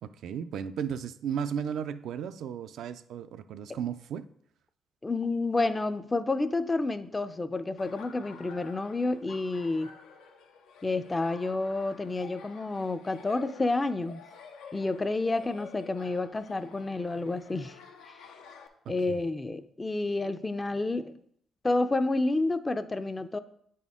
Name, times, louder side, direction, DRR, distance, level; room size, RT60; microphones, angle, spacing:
voice 1, 0.0-4.3 18.9-19.2, right 8 dB, 75° right, 0.3 m, -35 dB
voice 2, 5.0-9.9 10.8-14.2 14.7-17.7 18.9-21.2 21.6-23.4, left 2 dB, 20° left, 0.4 m, -29 dB
Laughter, 7.8-18.7, left 6 dB, 90° left, 0.6 m, -50 dB
8.7 x 4.2 x 3.6 m
cardioid pair, 90°, 0 cm